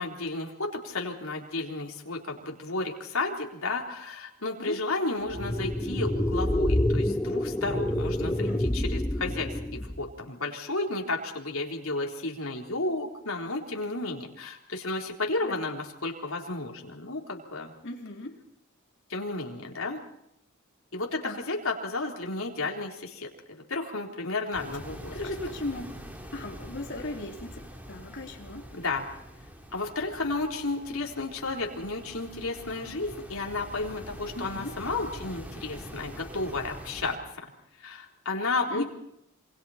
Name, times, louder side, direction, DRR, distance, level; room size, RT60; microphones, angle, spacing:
voice 1, 0.0-17.7 19.1-20.0 20.9-25.2 28.7-29.1 29.7-37.2 37.8-38.9, left 3 dB, 75° left, 1 dB, 4.0 m, -32 dB
sound 1, 5.3-10.1, left 1 dB, 10° left, 0.7 m, -27 dB
voice 2, 8.3-8.6 15.4-15.6 17.8-18.4 21.2-21.4 25.1-27.6 27.9-28.6 34.4-34.7 38.7-38.8, left 2 dB, 55° left, 1 dB, 3.6 m, -37 dB
sound 2, 24.5-37.2, equal, 10° right, 3.7 m, -44 dB
27.5 x 24.5 x 4.4 m, 0.78 s
head